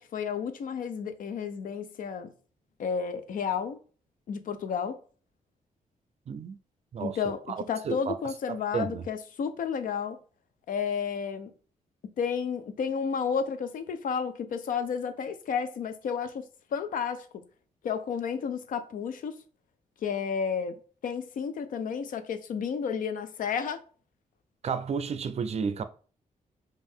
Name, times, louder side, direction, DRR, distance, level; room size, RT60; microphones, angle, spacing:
voice 1, 0.0-2.3 2.8-3.8 4.3-5.0 7.0-7.4 7.7-10.2 10.7-11.5 12.2-16.4 16.7-17.3 17.8-19.4 20.0-23.8, left 6 dB, 75° left, 0.6 m, -31 dB
voice 2, 6.3-6.6 6.9-7.2 7.5-8.1 8.7-9.0 24.6-25.8, right 6 dB, 50° right, 0.5 m, -31 dB
5.2 x 2.6 x 3.6 m
wide cardioid pair, 120°, 14 cm